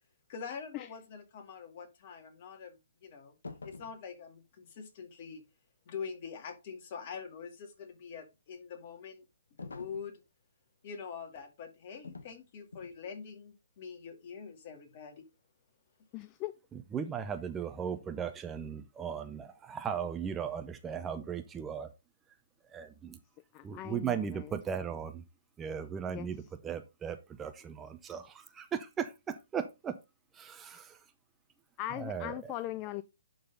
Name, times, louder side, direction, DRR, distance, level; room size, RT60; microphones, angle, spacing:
voice 1, 0.3-3.3 3.6-5.4 5.9-9.2 9.6-10.2 10.8-15.3, left 6 dB, 45° left, 2.2 m, -44 dB
sound 1, 3.4-4.0 9.6-10.1 12.0-12.4 12.7-13.0, left 4 dB, 80° left, 1.3 m, -46 dB
voice 2, 16.1-16.5 23.5-24.5 26.1-26.3 31.8-33.0, left 14 dB, 30° left, 0.4 m, -39 dB
voice 3, 16.9-21.9 22.7-23.2 23.6-25.2 25.6-29.9 30.3-31.0 32.0-32.3, right 7 dB, 15° right, 0.7 m, -37 dB
11.0 x 3.9 x 4.0 m
hypercardioid pair, 135°, 0 cm